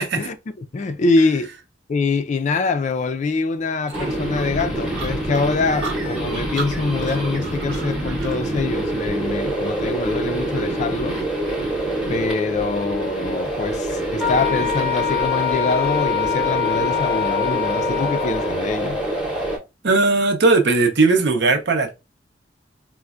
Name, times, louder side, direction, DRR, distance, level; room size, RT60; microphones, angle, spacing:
voice 1, 0.0-1.5 1.9-11.2 12.1-19.0, left 3 dB, 40° left, 0.3 m, -24 dB
sound 1, 3.9-19.6, right 1 dB, 5° right, 0.8 m, -26 dB
sound 2, 3.9-8.4, right 4 dB, 80° right, 1.0 m, -35 dB
Wind instrument woodwind instrument, 14.2-18.6, left 11 dB, 35° right, 0.9 m, -24 dB
voice 2, 19.8-21.9, right 3 dB, 65° right, 0.7 m, -17 dB
4.3 x 2.1 x 2.3 m
head